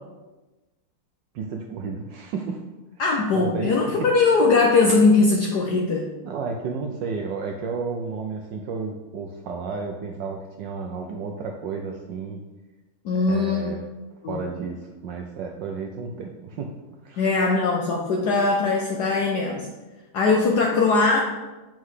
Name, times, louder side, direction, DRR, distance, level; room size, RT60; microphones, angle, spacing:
voice 1, 1.3-2.7 3.3-4.1 5.7-5.8 6.2-12.4 13.1-13.8 14.3-16.7 17.0-17.3, right 5 dB, 80° right, 2 dB, 1.0 m, -32 dB
voice 2, 3.0-6.1 13.0-13.7 14.2-14.4 17.2-19.7 20.1-21.2, left 3 dB, 75° left, 0 dB, 0.9 m, -20 dB
7.5 x 4.5 x 3.2 m, 1.1 s
omnidirectional pair, 2.4 m